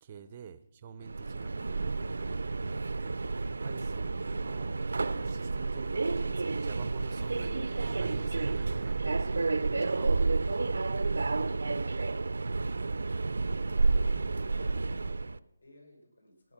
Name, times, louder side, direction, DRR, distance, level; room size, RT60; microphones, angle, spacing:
voice 1, 0.0-10.6 12.7-12.9, right 7 dB, 20° right, 14 dB, 0.5 m, -49 dB
Subway metro underground, 1.0-15.4, right 3 dB, 80° right, 0.5 m, -30 dB
voice 2, 14.5-16.5, left 1 dB, 90° left, 2 dB, 5.7 m, -59 dB
17.0 x 9.3 x 5.8 m, 0.88 s
hypercardioid pair, 175°, 0 cm